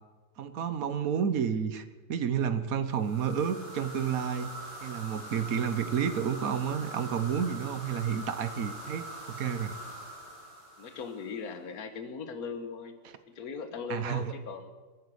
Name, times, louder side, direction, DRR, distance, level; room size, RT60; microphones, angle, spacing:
voice 1, 0.4-4.5 4.8-9.7 13.9-14.3, right 7 dB, 55° right, 11 dB, 1.2 m, -30 dB
sound 1, 2.9-11.4, right 1 dB, 70° right, 6.1 m, -43 dB
voice 2, 10.8-13.0 13.3-14.7, left 5 dB, 55° left, 8 dB, 1.7 m, -39 dB
24.0 x 9.4 x 6.4 m, 1.3 s
omnidirectional pair, 2.0 m